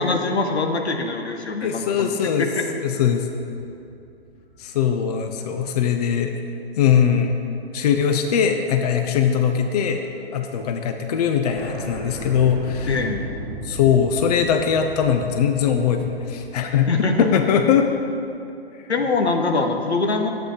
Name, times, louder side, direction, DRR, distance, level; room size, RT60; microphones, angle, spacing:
voice 1, 0.0-2.1 2.4-2.6 12.9-13.3 16.9-17.3 18.9-20.3, left 3 dB, 85° left, 4 dB, 1.1 m, -23 dB
voice 2, 1.6-3.3 4.6-6.4 6.8-7.4 7.7-10.0 10.3-13.0 13.6-17.9, left 7 dB, 40° left, 5 dB, 0.6 m, -21 dB
sound 1, 3.7-5.9 6.4-6.5 8.0-8.4 8.6-10.1 10.4-10.5 10.6-10.7 11.1-11.2 11.6-18.3, equal, 10° left, 1.8 m, -37 dB
11.0 x 8.4 x 3.3 m, 2.7 s
hypercardioid pair, 135°, 32 cm